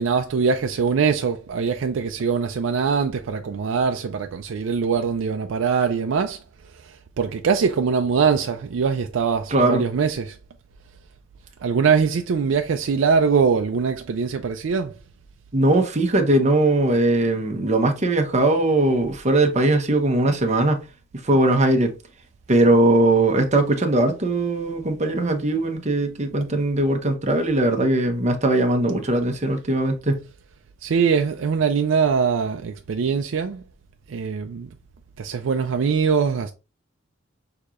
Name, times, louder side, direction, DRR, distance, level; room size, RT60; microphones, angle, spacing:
voice 1, 0.0-6.4 6.7-10.4 11.6-15.0 30.8-33.6 34.1-34.7 35.2-36.5, right 6 dB, 85° right, 0.4 m, -22 dB
voice 2, 9.5-9.8 15.5-20.8 21.2-21.9 22.5-30.2, right 2 dB, 35° right, 0.8 m, -20 dB
6.4 x 2.8 x 2.4 m
head